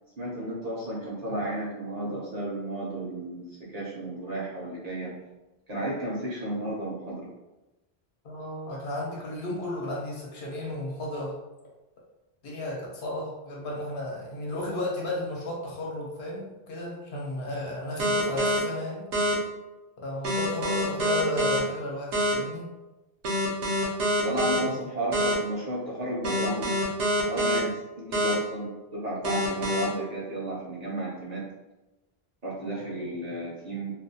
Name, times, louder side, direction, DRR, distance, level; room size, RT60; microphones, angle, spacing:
voice 1, 0.2-5.2 5.7-7.3 24.2-26.8 27.3-31.5 32.4-33.9, right 1 dB, 50° right, -5 dB, 0.6 m, -33 dB
voice 2, 8.2-11.4 12.4-19.1 20.0-22.7 24.5-24.8, left 1 dB, 80° left, -3 dB, 1.0 m, -34 dB
sound 1, 18.0-18.6 19.1-19.3 20.2-21.6 22.1-22.3 23.2-24.6 25.1-25.3 26.2-27.6 28.1-28.3 29.2-29.8, equal, 70° right, 0.9 m, -25 dB
2.4 x 2.2 x 2.6 m, 1.0 s
omnidirectional pair, 1.1 m